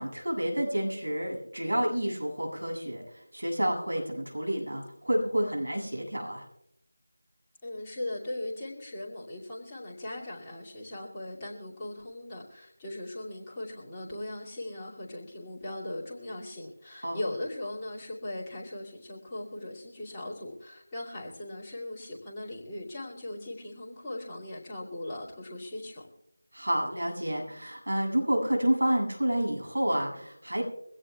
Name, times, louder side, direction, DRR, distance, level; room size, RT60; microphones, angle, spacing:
voice 1, 0.0-6.4 17.0-17.2 26.5-30.6, right 1 dB, 75° right, 0 dB, 7.9 m, -29 dB
voice 2, 7.6-26.1, left 1 dB, 10° left, -8 dB, 2.6 m, -39 dB
24.0 x 17.0 x 2.4 m, 0.78 s
figure-of-eight pair, 170°, 0 cm